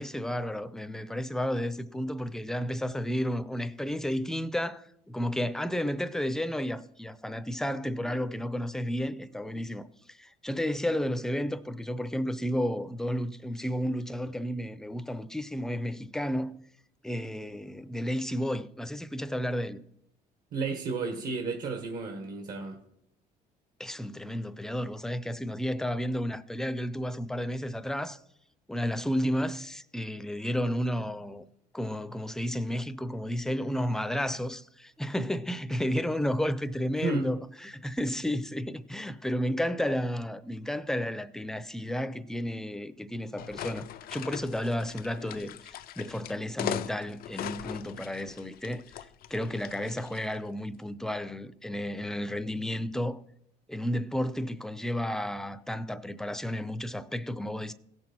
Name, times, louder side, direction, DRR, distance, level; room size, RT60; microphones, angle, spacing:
voice 1, 0.0-16.6 17.0-19.8 23.8-28.2 28.7-31.5 31.7-48.8 49.3-53.2 53.7-57.7, equal, 5° left, 0.6 m, -32 dB
voice 2, 20.5-22.8 37.0-37.3, right 4 dB, 60° right, 1.5 m, -32 dB
sound 1, 43.4-50.4, left 10 dB, 60° left, 0.5 m, -40 dB
16.5 x 6.2 x 4.4 m
cardioid pair, 110°, 17 cm